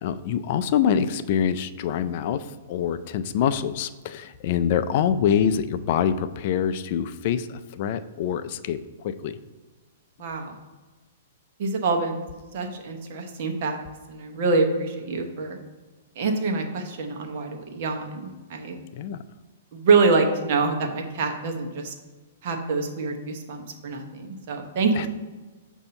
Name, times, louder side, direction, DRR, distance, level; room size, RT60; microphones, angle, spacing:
voice 1, 0.0-8.8 9.0-9.4 19.0-19.2 25.0-25.1, left 8 dB, 50° left, 12 dB, 0.3 m, -25 dB
voice 2, 10.2-10.6 11.6-12.2 12.5-13.8 14.1-15.6 16.2-18.8 19.7-21.9 22.4-25.1, right 4 dB, 55° right, 3 dB, 1.0 m, -25 dB
6.7 x 2.7 x 5.3 m, 1.3 s
hypercardioid pair, 125°, 0 cm